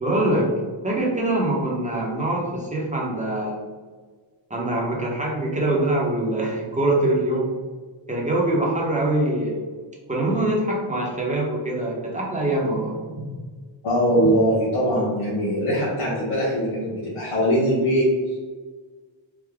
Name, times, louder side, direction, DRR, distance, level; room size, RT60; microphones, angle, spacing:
voice 1, 0.0-0.5 0.8-3.6 4.5-7.5 8.1-9.6 10.1-13.4, right 1 dB, 15° right, -3 dB, 0.9 m, -24 dB
voice 2, 13.8-18.4, equal, 90° left, -8 dB, 1.0 m, -21 dB
3.6 x 2.2 x 3.5 m, 1.4 s
wide cardioid pair, 95°, 48 cm